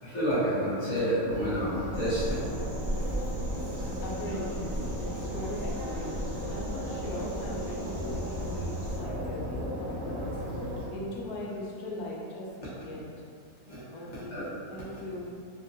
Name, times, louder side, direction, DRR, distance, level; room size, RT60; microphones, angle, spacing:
voice 1, 0.0-2.4 13.6-13.8 14.1-14.5 14.9-15.0, equal, 25° left, -11 dB, 0.8 m, -29 dB
sound 1, 1.3-10.9, equal, 70° right, 0.9 m, -35 dB
sound 2, 1.9-9.0, right 1 dB, 40° right, 0.8 m, -38 dB
voice 2, 4.0-6.1 6.5-10.3 10.6-12.5 12.8-13.0 13.9-15.3, left 1 dB, 85° left, -4 dB, 1.1 m, -39 dB
3.3 x 2.1 x 2.7 m, 2.4 s
omnidirectional pair, 1.6 m